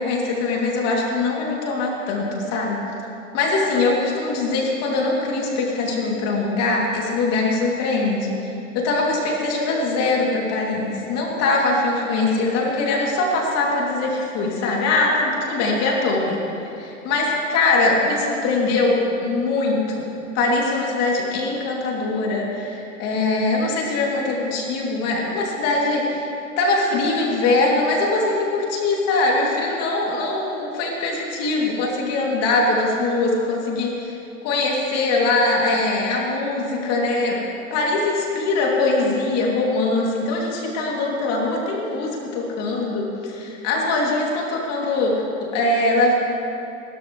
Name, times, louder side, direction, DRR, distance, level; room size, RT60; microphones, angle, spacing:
voice 1, 0.0-2.8 3.3-16.4 16.7-26.3 26.6-34.2 34.4-37.4 37.7-46.1, left 2 dB, 40° left, -2 dB, 2.8 m, -22 dB
28.5 x 13.0 x 3.2 m, 2.8 s
hypercardioid pair, 115°, 41 cm